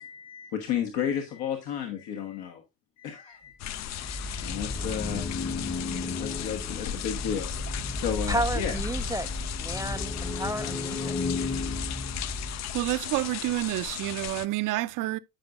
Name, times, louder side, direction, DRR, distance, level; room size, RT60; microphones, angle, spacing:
voice 1, 0.0-2.6 3.0-3.5 4.0-5.3 6.2-7.5 7.9-8.8, left 8 dB, 70° left, 1.3 m, -33 dB
sound 1, 3.6-14.5, left 12 dB, 45° left, 0.5 m, -36 dB
sound 2, 3.7-13.0, left 2 dB, 10° left, 0.8 m, -34 dB
voice 2, 8.3-11.1, right 1 dB, 10° right, 0.3 m, -32 dB
voice 3, 12.7-15.2, right 18 dB, 50° right, 0.6 m, -29 dB
13.0 x 5.1 x 2.4 m
hypercardioid pair, 70°, 40 cm